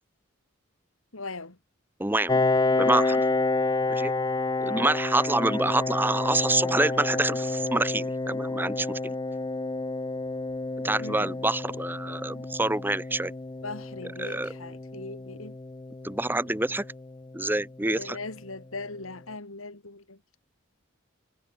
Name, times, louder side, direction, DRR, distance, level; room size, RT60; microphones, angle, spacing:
voice 1, 1.1-1.6 4.6-4.9 11.0-11.3 13.6-15.6 17.8-20.2, left 3 dB, 80° left, 3.1 m, -39 dB
voice 2, 2.0-2.4 2.8-3.2 3.9-4.1 4.6-9.1 10.8-13.3 14.2-14.5 16.0-16.8 17.3-18.2, right 2 dB, 10° right, 0.9 m, -27 dB
Piano, 2.3-17.6, left 3 dB, 20° left, 0.4 m, -29 dB
head